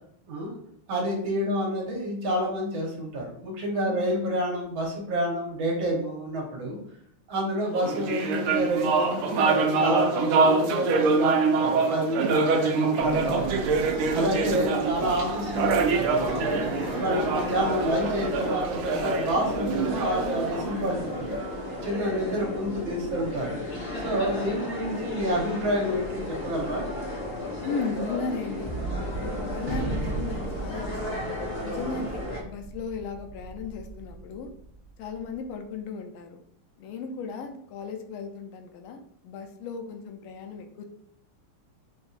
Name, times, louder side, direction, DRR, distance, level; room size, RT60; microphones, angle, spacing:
voice 1, 0.9-6.8 7.3-13.4 14.1-16.6 17.0-21.4 21.8-23.6 24.0-26.8, equal, 70° right, -1 dB, 1.7 m, -28 dB
sound 1, 7.7-21.4, right 4 dB, 85° right, 1.5 m, -25 dB
sound 2, 13.0-32.4, left 1 dB, 45° left, 1.0 m, -34 dB
voice 2, 27.6-28.7 29.2-31.2 31.6-34.5 35.0-36.4 36.8-40.8, left 5 dB, 80° left, 4 dB, 1.3 m, -36 dB
Gunshot gunfire, 28.6-35.2, right 3 dB, 55° right, 0.8 m, -36 dB
5.9 x 2.6 x 2.4 m, 0.67 s
omnidirectional pair, 2.4 m